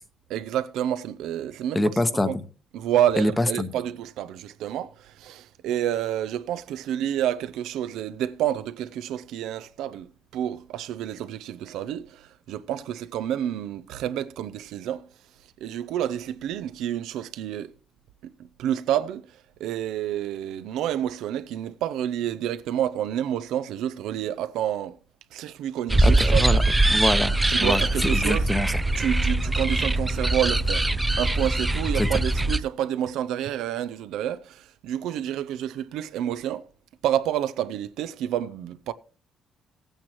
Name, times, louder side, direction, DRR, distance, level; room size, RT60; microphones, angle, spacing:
voice 1, 0.3-1.8 2.2-2.4 2.7-15.1 15.6-17.7 18.6-19.2 19.6-25.0 25.3-26.7 27.5-28.5 28.9-30.9 31.2-36.6 37.0-38.9, right 11 dB, 90° right, 0.5 m, -29 dB
voice 2, 1.7-2.4 3.2-3.7 26.0-26.6 26.9-28.8 32.0-32.1, left 1 dB, 15° left, 1.0 m, -25 dB
sound 1, 25.9-32.6, right 2 dB, 15° right, 0.4 m, -22 dB
16.0 x 9.0 x 3.0 m
cardioid pair, 90°, 0 cm